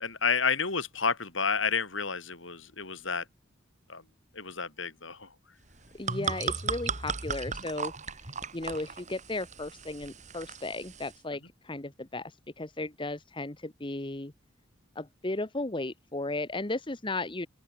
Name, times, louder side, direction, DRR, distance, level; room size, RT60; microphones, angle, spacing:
voice 1, 0.0-3.3 3.9-4.0 4.3-5.3, left 5 dB, 75° left, 5.7 m, -30 dB
sound 1, 5.7-11.2, right 5 dB, 40° right, 3.0 m, -36 dB
voice 2, 5.9-7.9 8.5-14.3 14.9-17.5, left 2 dB, 25° left, 1.2 m, -35 dB
open air
head